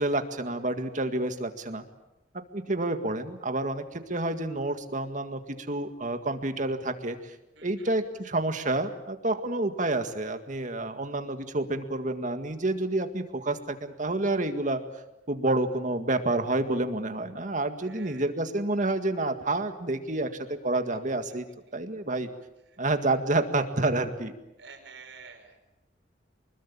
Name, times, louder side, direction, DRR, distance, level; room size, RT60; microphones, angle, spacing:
voice 1, 0.0-1.8 2.5-7.4 7.6-14.8 15.3-21.4 21.7-22.3 22.8-24.3, right 2 dB, 45° right, 7 dB, 1.9 m, -29 dB
voice 2, 7.6-7.9 17.8-18.3 24.6-25.6, right 5 dB, 85° right, 2 dB, 4.9 m, -49 dB
25.0 x 21.0 x 8.5 m, 0.93 s
head